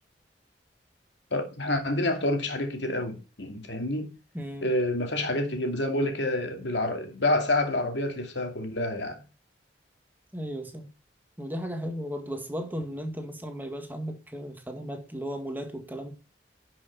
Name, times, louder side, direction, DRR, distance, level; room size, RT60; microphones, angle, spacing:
voice 1, 1.3-4.1 4.6-9.2, left 1 dB, 75° left, 2.6 m, -28 dB
voice 2, 4.3-4.7 10.3-10.9 11.4-16.1, equal, 10° right, 1.8 m, -35 dB
11.5 x 6.2 x 4.1 m
head